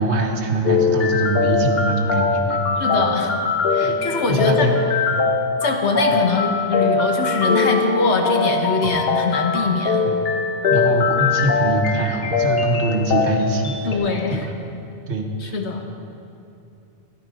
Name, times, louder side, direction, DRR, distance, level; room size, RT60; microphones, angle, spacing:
voice 1, 0.0-2.9 3.8-4.0 4.3-4.8 5.1-5.3 6.1-6.2 10.0-10.2 10.7-14.0 14.3-14.4 15.1-15.6, right 1 dB, 90° right, 2 dB, 1.6 m, -23 dB
sound 1, 0.6-13.9, left 4 dB, 65° left, 1.2 m, -21 dB
voice 2, 2.8-3.3 3.7-4.7 5.6-10.0 13.8-14.5 15.4-15.8, left 4 dB, 80° left, 3 dB, 1.4 m, -22 dB
15.0 x 11.0 x 5.0 m, 2.7 s
omnidirectional pair, 1.1 m